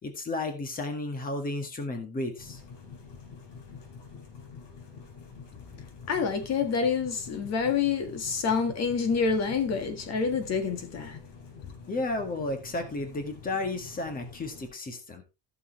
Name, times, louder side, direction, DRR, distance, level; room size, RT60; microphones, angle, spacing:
voice 1, 0.0-2.6 11.9-15.2, left 2 dB, 20° left, 1.9 m, -33 dB
sound 1, 2.4-14.7, left 5 dB, 85° left, 4.0 m, -47 dB
voice 2, 6.1-11.2, left 5 dB, 40° left, 1.8 m, -27 dB
15.0 x 6.9 x 3.2 m
cardioid pair, 175°, 39 cm